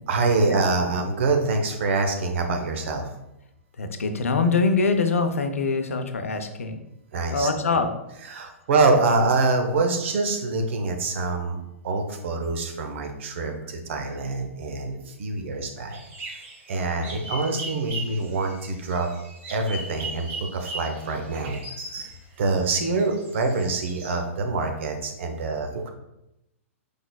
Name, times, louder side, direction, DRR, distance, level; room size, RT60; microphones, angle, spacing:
voice 1, 0.1-3.1 7.1-7.5 8.2-11.6 11.8-16.0 16.7-19.1 19.5-21.6 21.9-22.1 22.4-25.9, right 3 dB, 60° right, 4 dB, 0.8 m, -25 dB
voice 2, 3.8-6.7 7.3-7.9, left 4 dB, 75° left, 7 dB, 0.5 m, -23 dB
sound 1, 15.9-22.2 22.7-24.2, right 2 dB, 30° right, 1.1 m, -38 dB
5.1 x 3.9 x 2.3 m, 0.88 s
figure-of-eight pair, 115°, 7 cm